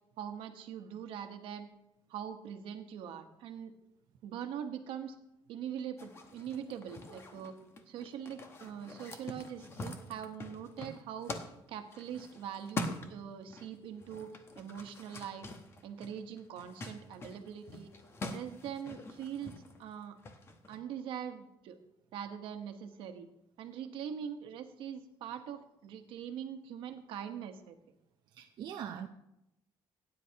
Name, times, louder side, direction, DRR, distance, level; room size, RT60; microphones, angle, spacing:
voice 1, 0.2-1.7 2.1-3.7 4.2-5.2 5.5-7.6 7.9-11.3 11.7-14.3 14.6-15.5 15.8-17.9 18.2-20.2 20.7-21.8 22.1-23.3 23.6-27.8, right 8 dB, 70° right, 6 dB, 1.1 m, -42 dB
sound 1, 6.0-13.7 13.9-20.8, left 2 dB, 30° left, 0.9 m, -45 dB
voice 2, 28.3-29.1, right 9 dB, 50° right, 3 dB, 0.6 m, -42 dB
17.5 x 9.9 x 2.9 m, 0.85 s
cardioid pair, 175°, 9 cm